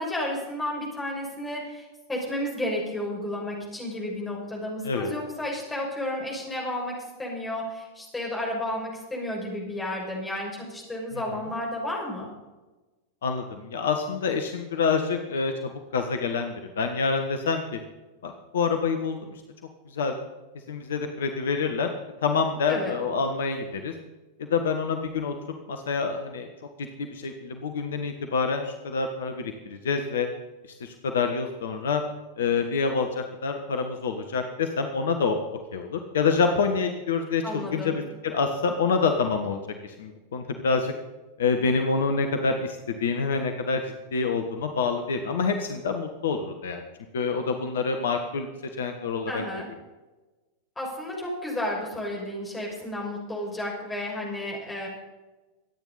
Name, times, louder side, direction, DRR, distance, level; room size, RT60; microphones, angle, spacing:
voice 1, 0.0-12.3 22.7-23.0 37.4-37.9 49.3-49.7 50.8-54.9, left 1 dB, 10° left, -2 dB, 6.4 m, -32 dB
voice 2, 13.2-17.8 18.2-19.4 19.9-20.1 20.7-21.9 22.2-23.9 24.4-25.3 25.7-26.5 26.8-30.3 30.8-32.0 32.4-35.4 35.7-40.9 41.4-43.8 44.1-46.9 47.1-48.5 48.8-49.4, left 5 dB, 60° left, 6 dB, 1.4 m, -27 dB
25.5 x 9.4 x 4.2 m, 1.2 s
figure-of-eight pair, 90°, 0 cm